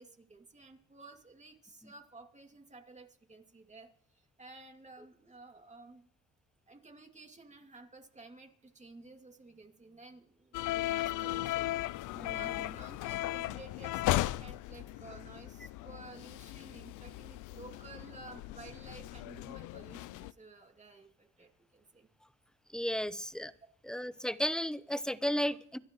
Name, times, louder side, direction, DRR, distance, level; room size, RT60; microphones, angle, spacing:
voice 1, 0.0-6.1 6.7-22.1, right 3 dB, 25° right, 3 dB, 2.6 m, -53 dB
sound 1, 10.5-20.3, left 16 dB, 85° left, 0.5 m, -36 dB
voice 2, 12.1-12.8 22.7-23.5 23.8-25.8, equal, ahead, 14 dB, 0.8 m, -34 dB
27.0 x 12.0 x 3.1 m, 0.65 s
cardioid pair, 90°, 30 cm